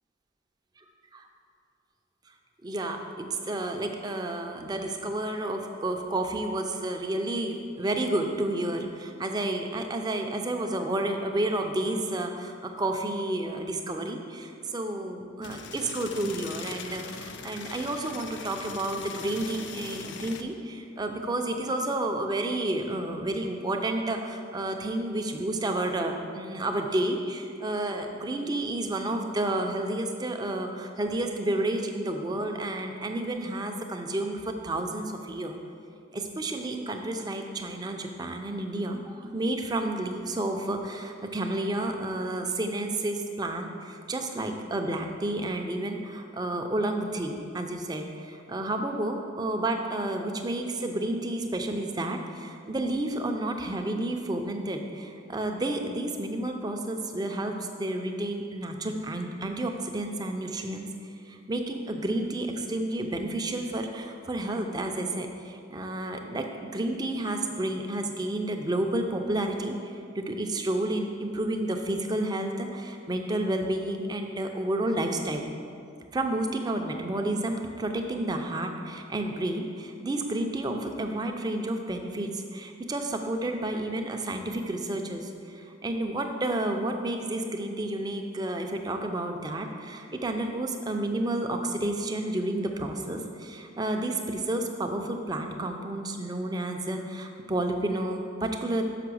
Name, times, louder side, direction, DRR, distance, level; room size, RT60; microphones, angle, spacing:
voice 1, 2.6-35.5 36.1-57.5 57.8-60.9 61.2-75.5 76.1-98.8, right 1 dB, 20° right, 4 dB, 0.5 m, -31 dB
sound 1, 15.4-20.4, left 5 dB, 60° left, 0.4 m, -41 dB
5.8 x 5.6 x 6.2 m, 2.4 s
head